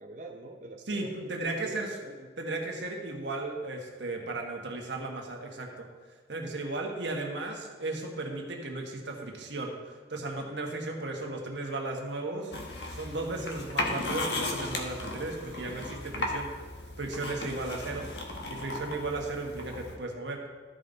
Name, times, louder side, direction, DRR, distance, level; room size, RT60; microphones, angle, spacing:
voice 1, 0.0-1.3 1.6-2.3 17.3-17.6, right 2 dB, 45° right, 1 dB, 0.6 m, -45 dB
voice 2, 0.9-1.9 2.4-5.9 6.3-12.5 12.9-16.5 17.0-18.1 18.5-20.4, right 2 dB, 85° right, 1 dB, 1.4 m, -35 dB
sound 1, 12.5-19.9, left 2 dB, 70° left, 1.2 m, -36 dB
13.5 x 5.3 x 4.0 m, 1.4 s
head